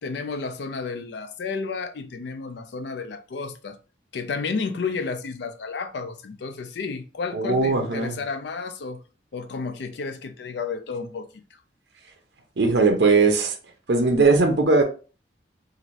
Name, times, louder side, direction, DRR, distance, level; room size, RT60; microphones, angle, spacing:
voice 1, 0.0-3.8 4.1-9.0 9.3-11.3, left 4 dB, 70° left, 0.4 m, -32 dB
voice 2, 7.3-8.2 12.6-13.6 13.9-14.8, right 3 dB, 65° right, 0.5 m, -19 dB
3.1 x 2.5 x 2.5 m
head